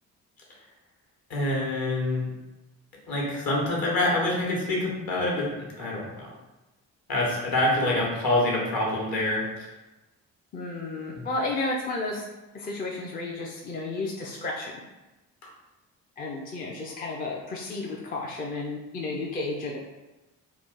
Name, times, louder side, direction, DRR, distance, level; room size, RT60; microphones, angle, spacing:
voice 1, 1.3-2.2 3.1-6.3 7.1-9.5 11.1-11.2, left 1 dB, 45° left, -3 dB, 1.1 m, -26 dB
voice 2, 10.5-12.2 12.5-14.7 16.2-19.8, left 2 dB, 20° left, -2 dB, 0.4 m, -32 dB
2.8 x 2.4 x 3.6 m, 1.1 s
figure-of-eight pair, 40°, 48 cm